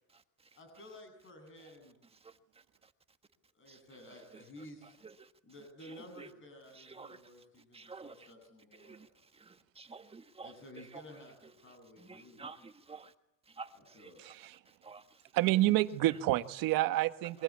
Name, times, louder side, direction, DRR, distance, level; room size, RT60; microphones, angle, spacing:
voice 1, 0.5-1.9 3.5-4.9 5.4-9.2 10.4-12.5 13.7-14.3, left 1 dB, 35° left, 7 dB, 7.8 m, -53 dB
voice 2, 6.9-7.2 7.7-8.3 8.8-9.1 9.3-10.5 10.9-11.0 12.0-13.1 13.5-14.3 14.8-15.0, right 4 dB, 15° right, 8 dB, 1.5 m, -50 dB
voice 3, 14.2-14.6 15.3-17.4, right 16 dB, 65° right, 10 dB, 1.6 m, -29 dB
27.5 x 23.5 x 8.5 m, 0.78 s
cardioid pair, 135°, 37 cm